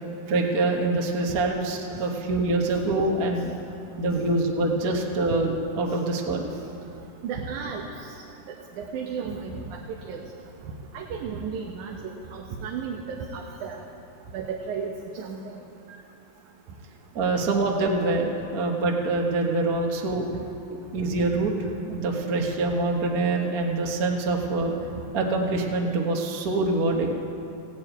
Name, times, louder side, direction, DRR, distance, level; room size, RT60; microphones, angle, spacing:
voice 1, 0.3-3.5 4.0-6.5 17.1-20.2 20.9-21.5 21.9-24.7 25.1-27.2, right 2 dB, 45° right, 1 dB, 1.3 m, -25 dB
voice 2, 7.2-7.8 8.8-9.8 10.0-10.2 10.9-13.8 14.3-15.6, right 6 dB, 80° right, 1 dB, 2.5 m, -34 dB
16.0 x 9.6 x 9.3 m, 2.6 s
omnidirectional pair, 3.4 m